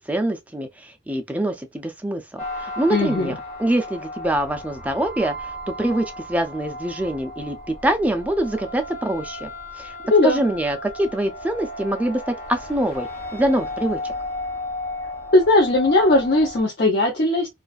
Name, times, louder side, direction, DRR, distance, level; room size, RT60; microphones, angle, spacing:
voice 1, 0.0-3.3 3.6-9.5 9.8-9.9 10.2-12.2 12.5-14.1, right 1 dB, 5° right, 0.3 m, -24 dB
sound 1, 2.4-16.6, left 1 dB, 35° left, 1.1 m, -34 dB
voice 2, 2.9-3.3 10.1-10.4 15.3-17.5, left 2 dB, 50° left, 0.5 m, -18 dB
2.4 x 2.3 x 2.3 m
head